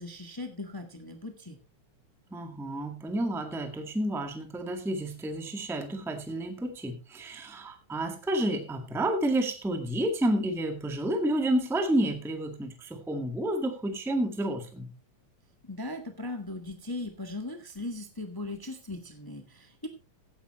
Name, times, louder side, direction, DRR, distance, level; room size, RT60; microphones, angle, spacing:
voice 1, 0.0-1.6 15.7-19.9, left 2 dB, 25° left, 5 dB, 0.5 m, -38 dB
voice 2, 2.3-14.9, right 1 dB, ahead, 5 dB, 1.1 m, -30 dB
16.0 x 10.0 x 3.1 m, 0.30 s
omnidirectional pair, 3.4 m